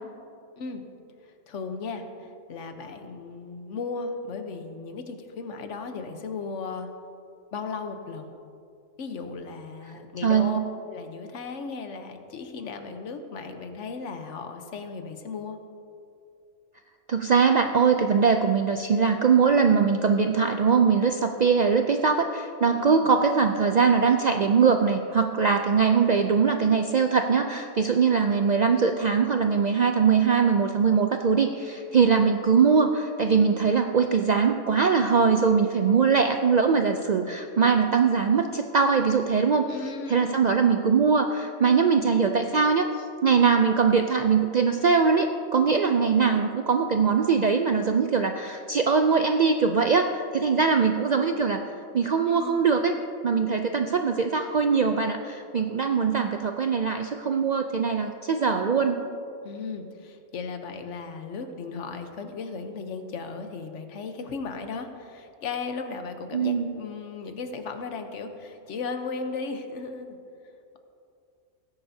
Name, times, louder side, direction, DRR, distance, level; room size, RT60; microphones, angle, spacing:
voice 1, 1.5-6.9 7.5-8.3 9.0-15.6 22.7-23.1 39.7-40.5 52.2-52.7 59.4-70.2, left 4 dB, 70° left, 7 dB, 1.2 m, -36 dB
voice 2, 10.2-10.6 17.1-39.7 40.1-51.6 51.9-52.9 53.2-59.0 66.3-66.7, right 5 dB, 75° right, 5 dB, 0.4 m, -22 dB
17.5 x 9.8 x 2.7 m, 2.6 s
omnidirectional pair, 1.3 m